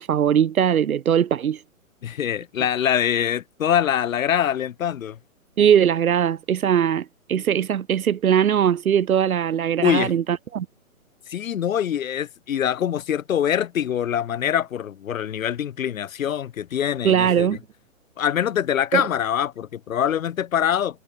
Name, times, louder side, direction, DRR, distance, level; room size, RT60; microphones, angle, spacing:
voice 1, 0.0-1.6 5.6-10.7 17.0-17.6 18.9-19.0, right 9 dB, 85° right, 1.0 m, -20 dB
voice 2, 2.0-5.2 9.8-10.1 11.3-17.6 18.2-21.0, left 9 dB, 70° left, 0.9 m, -24 dB
hypercardioid pair, 160°, 41 cm